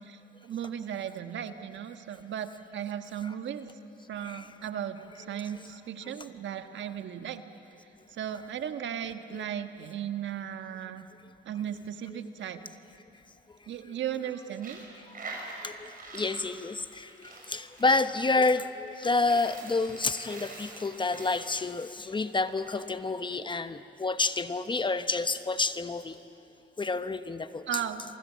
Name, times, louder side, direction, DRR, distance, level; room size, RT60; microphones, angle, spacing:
voice 1, 0.0-3.7 4.1-7.4 8.1-11.1 11.4-12.6 13.7-14.9 27.7-28.0, right 9 dB, 70° right, 8 dB, 1.4 m, -36 dB
Coin (dropping), 14.5-22.7, right 3 dB, 45° right, 6.7 m, -45 dB
voice 2, 15.6-26.1 26.8-27.6, left 3 dB, 25° left, 11 dB, 1.0 m, -29 dB
29.0 x 24.0 x 7.5 m, 2.9 s
cardioid pair, 90°, 20 cm